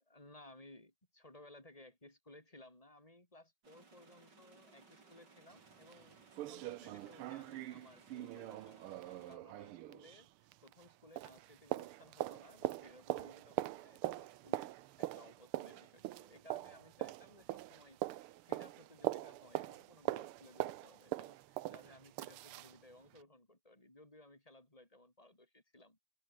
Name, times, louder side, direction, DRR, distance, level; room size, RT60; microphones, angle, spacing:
voice 1, 0.1-6.2 6.5-26.0, left 1 dB, 15° left, 5.5 m, -60 dB
sound 1, 3.6-9.4, right 4 dB, 55° right, 4.1 m, -63 dB
sound 2, 5.5-5.6 5.9-6.0 6.3-10.9 11.2-22.8 23.1-23.2, right 15 dB, 90° right, 1.6 m, -42 dB
omnidirectional pair, 2.3 m